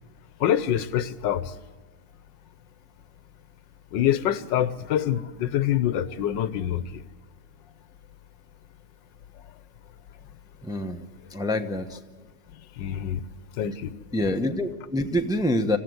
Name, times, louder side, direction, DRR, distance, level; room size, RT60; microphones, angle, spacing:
voice 1, 0.4-1.5 3.9-7.0 12.8-13.2 13.6-14.0, left 11 dB, 85° left, 15 dB, 1.6 m, -25 dB
voice 2, 10.6-11.1 11.3-12.0 14.1-15.8, left 1 dB, 5° right, 4 dB, 0.7 m, -26 dB
27.0 x 15.0 x 7.9 m, 1.3 s
omnidirectional pair, 1.9 m